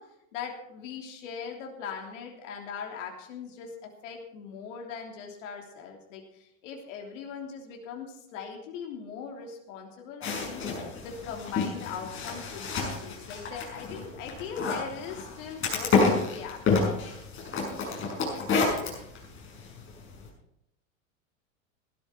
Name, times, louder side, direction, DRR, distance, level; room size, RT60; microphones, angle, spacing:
voice 1, 0.0-10.6 11.0-17.1, left 6 dB, 65° left, 1 dB, 3.3 m, -40 dB
sound 1, 10.2-20.3, left 4 dB, 30° left, 6.4 m, -30 dB
16.5 x 12.5 x 4.5 m, 0.79 s
hypercardioid pair, 105°, 41 cm